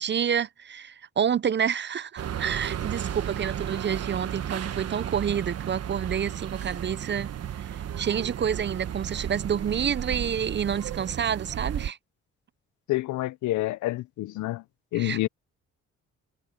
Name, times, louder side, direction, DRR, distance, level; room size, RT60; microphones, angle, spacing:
voice 1, 0.0-12.0 14.9-15.2, right 8 dB, 35° right, 0.7 m, -29 dB
sound 1, 2.2-11.9, right 9 dB, 55° right, 1.2 m, -33 dB
voice 2, 12.9-14.6 14.9-15.3, left 17 dB, 75° left, 0.6 m, -28 dB
cardioid pair, 90°, 30 cm